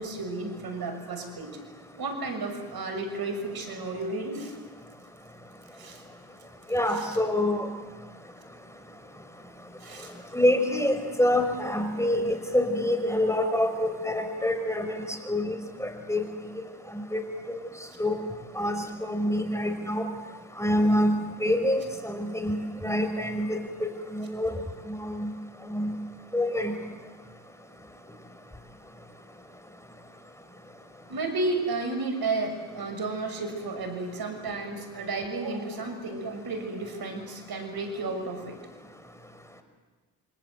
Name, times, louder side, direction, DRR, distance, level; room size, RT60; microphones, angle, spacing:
voice 1, 0.0-1.5 2.0-4.5 5.8-6.0 7.1-7.3 9.8-10.1 31.1-38.6, right 3 dB, 55° right, 7 dB, 6.6 m, -32 dB
voice 2, 6.7-7.7 10.3-16.2 16.9-17.6 18.0-18.2 18.6-20.1 20.6-24.5 24.9-25.3 25.7-25.9 26.3-26.7, left 1 dB, 5° left, 7 dB, 4.7 m, -26 dB
28.0 x 25.0 x 8.0 m, 1.3 s
supercardioid pair, 60°, 44 cm